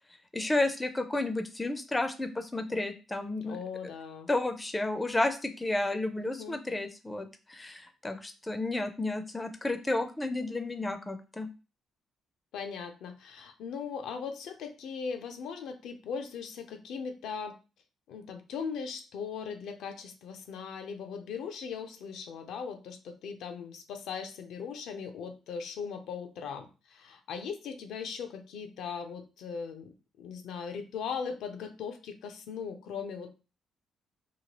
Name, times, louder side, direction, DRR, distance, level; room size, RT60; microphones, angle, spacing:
voice 1, 0.3-3.6 4.3-11.5, left 2 dB, 15° left, 8 dB, 0.4 m, -32 dB
voice 2, 3.4-4.3 6.2-6.6 12.5-17.6 18.1-33.4, left 6 dB, 80° left, 6 dB, 0.4 m, -39 dB
2.9 x 2.3 x 2.9 m, 0.32 s
cardioid pair, 90°, 0 cm